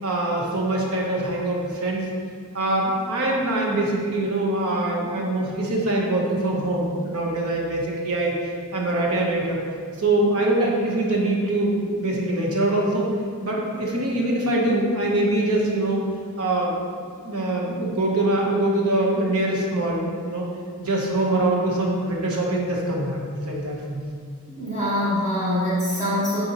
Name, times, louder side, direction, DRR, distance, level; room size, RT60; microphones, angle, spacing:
voice 1, 0.0-2.0 2.5-8.4 8.7-9.6 10.0-13.1 13.4-16.0 16.4-16.7 17.2-20.5 20.8-24.1, right 1 dB, 85° right, -2 dB, 1.1 m, -23 dB
voice 2, 24.5-26.4, left 1 dB, 35° right, -9 dB, 1.5 m, -24 dB
8.1 x 4.4 x 3.0 m, 2.1 s
head